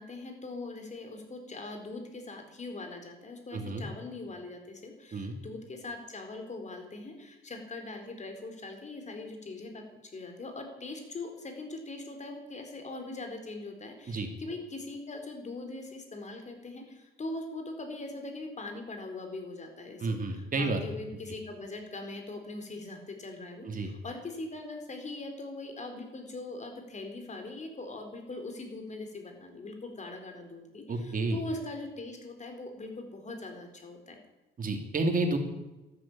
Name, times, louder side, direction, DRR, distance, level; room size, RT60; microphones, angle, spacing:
voice 1, 0.0-34.2, left 2 dB, 35° left, 4 dB, 4.2 m, -41 dB
voice 2, 3.5-3.8 5.1-5.3 14.1-14.3 20.0-20.8 23.6-23.9 30.9-31.4 34.6-35.4, right 3 dB, 40° right, 5 dB, 3.0 m, -30 dB
13.0 x 12.0 x 8.8 m, 1.0 s
cardioid pair, 110°, 21 cm